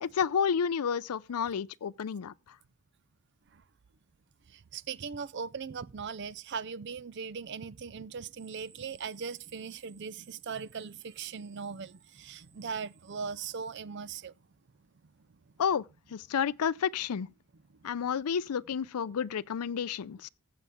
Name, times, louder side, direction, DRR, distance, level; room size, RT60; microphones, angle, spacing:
voice 1, 0.0-2.6 15.6-15.8 16.1-17.3 17.8-20.3, left 7 dB, 85° left, 0.4 m, -30 dB
voice 2, 4.5-14.3 17.8-17.9, right 6 dB, 50° right, 0.4 m, -39 dB
sound 1, 8.4-13.8, right 9 dB, 90° right, 1.9 m, -62 dB
15.5 x 6.8 x 3.6 m
head